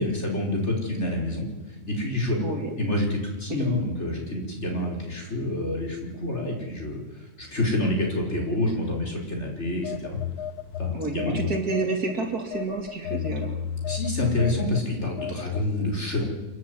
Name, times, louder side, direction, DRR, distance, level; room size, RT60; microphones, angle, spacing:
voice 1, 0.0-1.5 1.9-2.4 2.8-10.2 10.8-11.4 13.9-16.2, left 1 dB, 35° left, 0 dB, 5.4 m, -27 dB
voice 2, 2.4-2.7 3.5-3.7 10.9-13.6, right 3 dB, 55° right, 4 dB, 3.1 m, -29 dB
Telephone, 9.8-12.1 12.5-15.7, left 9 dB, 65° left, 1.2 m, -32 dB
29.0 x 10.5 x 9.6 m, 1.3 s
omnidirectional pair, 2.0 m